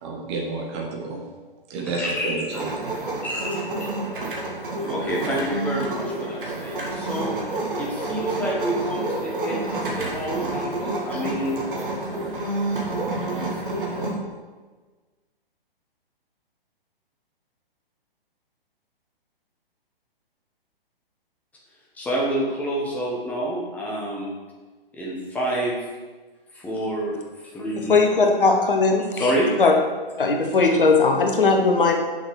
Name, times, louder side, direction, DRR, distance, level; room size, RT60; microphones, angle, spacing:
voice 1, 0.0-1.2 1.7-2.7 4.2-4.5 4.8-5.2, right 3 dB, 30° right, -1 dB, 1.4 m, -31 dB
voice 2, 2.0-2.4 3.2-3.6 4.8-7.4 7.8-11.8 21.9-24.3 24.9-25.8 26.5-27.1 27.4-28.0 29.2-29.5, right 1 dB, 5° left, -4 dB, 1.0 m, -28 dB
sound 1, 2.5-14.1, right 2 dB, 60° right, 1.8 m, -29 dB
voice 3, 27.9-29.3 29.6-29.7 30.2-31.9, left 4 dB, 60° left, 2 dB, 1.2 m, -18 dB
6.2 x 5.8 x 4.8 m, 1.3 s
figure-of-eight pair, 125°, 29 cm